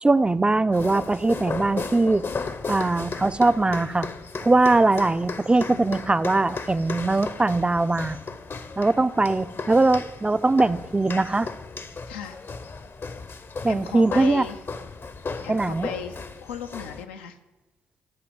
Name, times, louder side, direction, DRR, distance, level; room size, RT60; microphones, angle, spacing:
voice 1, 0.0-2.2 2.7-4.1 4.4-8.2 8.8-11.5 13.6-14.5 15.5-15.9, right 2 dB, 15° right, 14 dB, 0.4 m, -21 dB
sound 1, 0.7-17.0, left 4 dB, 40° left, 0.7 m, -35 dB
voice 2, 12.1-12.4 13.7-14.6 15.4-17.4, left 7 dB, 85° left, 7 dB, 0.5 m, -37 dB
12.0 x 5.1 x 5.1 m, 1.1 s
hypercardioid pair, 45°, 6 cm